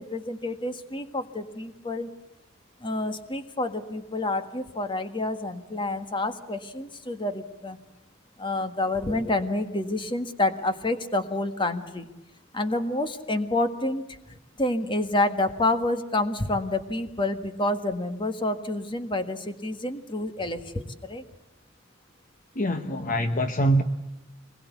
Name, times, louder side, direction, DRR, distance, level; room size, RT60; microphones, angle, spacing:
voice 1, 0.0-2.1 2.8-7.8 8.4-12.1 12.5-14.0 14.3-21.2, left 2 dB, 25° left, 1.6 m, -28 dB
voice 2, 22.6-23.8, right 1 dB, 40° left, 1.1 m, -24 dB
24.5 x 21.0 x 8.3 m
head